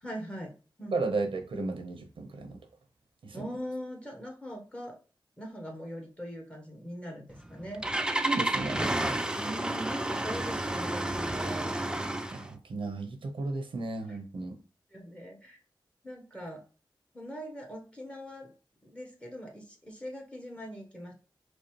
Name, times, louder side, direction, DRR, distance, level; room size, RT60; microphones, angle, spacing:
voice 1, 0.0-1.0 3.3-5.0 5.4-7.8 9.2-11.8 14.1-14.2 14.9-15.6 16.0-16.6 17.1-18.5 18.8-21.1, equal, 15° left, 1 dB, 1.2 m, -41 dB
voice 2, 0.9-2.6 3.2-3.5 8.2-8.8 12.3-14.6, right 3 dB, 90° right, 5 dB, 0.8 m, -34 dB
Engine starting, 7.3-12.5, right 1 dB, 10° right, 0.4 m, -31 dB
5.1 x 2.0 x 3.1 m, 0.36 s
wide cardioid pair, 105°, 9 cm